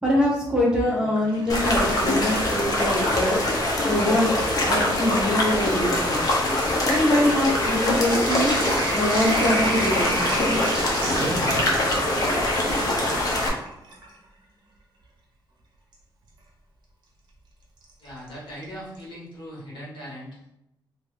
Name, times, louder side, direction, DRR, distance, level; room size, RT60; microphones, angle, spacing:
voice 1, 0.0-3.4 3.9-6.2 6.8-8.5 8.9-10.8, left 1 dB, 10° right, -4 dB, 0.6 m, -24 dB
Sink (filling or washing), 0.7-2.7 3.0-3.9 4.7-4.8 5.0-14.2 15.9-16.0 17.8-18.3 18.6-18.7 18.9-19.0, right 2 dB, 55° right, 0.7 m, -33 dB
sound 1, 1.5-13.5, left 1 dB, 45° left, 0.7 m, -23 dB
voice 2, 18.0-20.5, equal, 65° left, -5 dB, 1.4 m, -39 dB
2.8 x 2.4 x 3.3 m, 0.83 s
wide cardioid pair, 175°, 9 cm